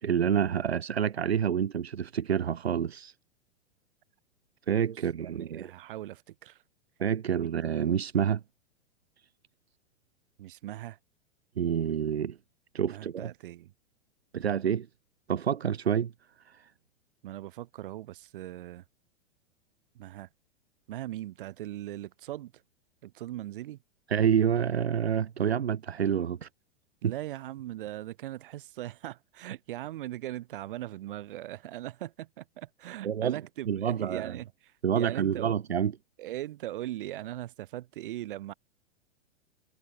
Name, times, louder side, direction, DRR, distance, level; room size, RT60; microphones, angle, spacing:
voice 1, 0.0-3.1 4.7-5.7 7.0-8.4 11.6-12.4 12.7-13.3 14.3-14.9 15.3-16.1 16.4-16.7 24.1-26.5 27.0-27.1 33.0-33.4 33.7-34.4 34.8-35.9, right 8 dB, 70° right, 1.0 m, -28 dB
voice 2, 5.3-6.6 10.4-11.0 12.9-13.7 17.2-18.8 19.9-20.3 20.9-22.5 23.0-23.8 27.0-35.5 36.2-38.5, right 14 dB, 55° right, 1.6 m, -39 dB
figure-of-eight pair, 105°, 32 cm